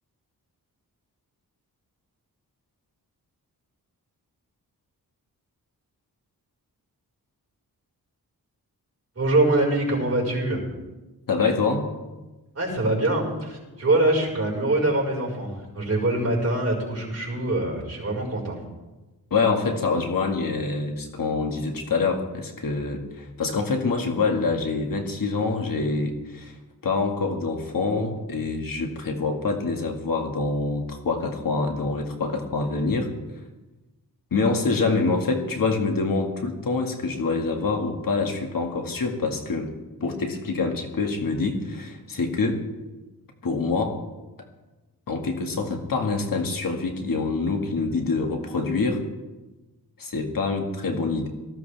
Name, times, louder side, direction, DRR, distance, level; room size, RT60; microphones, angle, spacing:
voice 1, 9.2-10.6 12.6-18.6, right 2 dB, 40° right, -2 dB, 5.2 m, -24 dB
voice 2, 11.3-11.9 19.3-26.6 26.8-33.1 34.3-39.7 40.0-42.6 43.4-44.0 45.1-49.0 50.0-51.3, left 4 dB, 65° left, 3 dB, 2.1 m, -26 dB
19.0 x 15.5 x 3.5 m, 1.1 s
wide cardioid pair, 110°, 37 cm